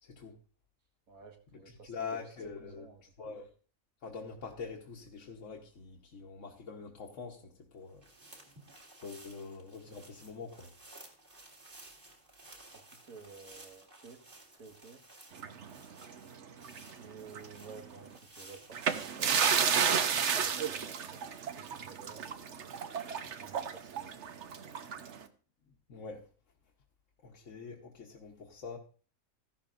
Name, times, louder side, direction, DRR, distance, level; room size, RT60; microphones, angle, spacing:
voice 1, 0.0-0.3 1.7-3.5 4.0-8.0 9.0-10.7 25.7-26.3 27.2-28.8, left 5 dB, 60° left, 1.4 m, -44 dB
voice 2, 1.1-2.2 2.6-3.0 12.9-14.2 14.5-15.0 17.0-22.4 23.2-24.5, right 5 dB, 80° right, 2.1 m, -53 dB
sound 1, 7.8-19.7, right 2 dB, 40° right, 2.4 m, -55 dB
sound 2, 15.4-16.9 17.3-17.5 18.7-25.2, right 7 dB, 60° right, 1.1 m, -32 dB
14.5 x 11.5 x 2.5 m
omnidirectional pair, 1.5 m